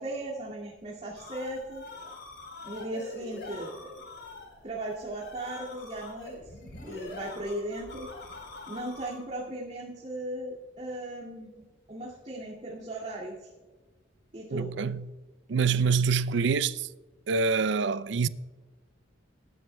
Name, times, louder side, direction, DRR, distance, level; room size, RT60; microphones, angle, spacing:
voice 1, 0.0-1.8 2.6-4.0 4.6-6.5 6.8-8.1 8.7-13.5 14.3-14.7, right 1 dB, 35° right, 2.3 m, -37 dB
sound 1, 0.9-9.4, left 2 dB, 65° left, 3.8 m, -44 dB
voice 2, 14.5-15.1 15.5-16.9 17.3-18.3, right 5 dB, 65° right, 0.4 m, -26 dB
20.0 x 12.0 x 2.3 m
head